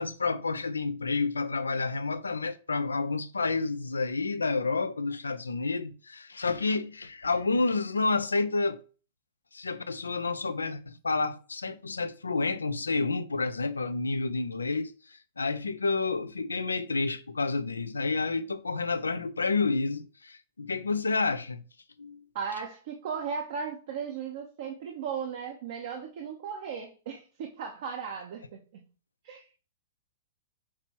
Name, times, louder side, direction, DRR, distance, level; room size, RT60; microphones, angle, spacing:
voice 1, 0.0-8.8 9.5-21.6 22.0-22.2, left 3 dB, 80° left, 0.4 m, -29 dB
voice 2, 22.3-28.8 29.2-29.5, right 6 dB, 55° right, 0.9 m, -36 dB
5.9 x 3.0 x 2.9 m
figure-of-eight pair, 105°, 0 cm